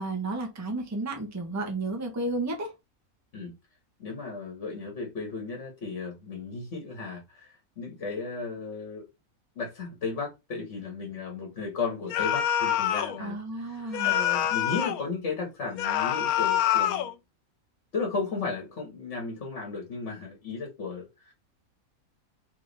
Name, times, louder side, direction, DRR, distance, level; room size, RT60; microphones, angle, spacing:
voice 1, 0.0-2.7 13.2-14.2, right 2 dB, 15° right, 0.9 m, -32 dB
voice 2, 4.0-9.1 9.5-17.1 17.9-21.3, left 4 dB, 55° left, 1.6 m, -35 dB
sound 1, 12.1-13.2 13.9-15.0 15.8-17.1, left 11 dB, 90° left, 1.1 m, -26 dB
3.7 x 3.4 x 3.9 m
omnidirectional pair, 1.5 m